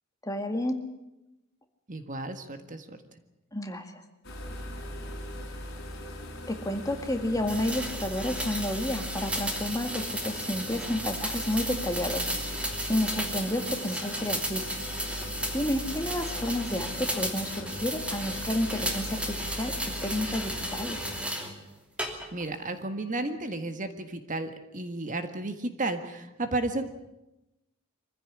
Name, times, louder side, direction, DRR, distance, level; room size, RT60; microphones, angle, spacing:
voice 1, 0.2-0.8 3.5-4.0 6.5-12.3 12.5-14.6 15.5-19.7 20.0-21.0, left 1 dB, 15° left, 6 dB, 2.0 m, -31 dB
voice 2, 1.9-3.0 22.3-26.8, right 2 dB, 35° right, 8 dB, 1.7 m, -33 dB
sound 1, 4.2-21.2, left 1 dB, 50° left, 4.8 m, -40 dB
sound 2, 7.5-21.5 22.0-22.5, equal, 5° right, 2.9 m, -34 dB
24.0 x 15.5 x 10.0 m, 0.95 s
head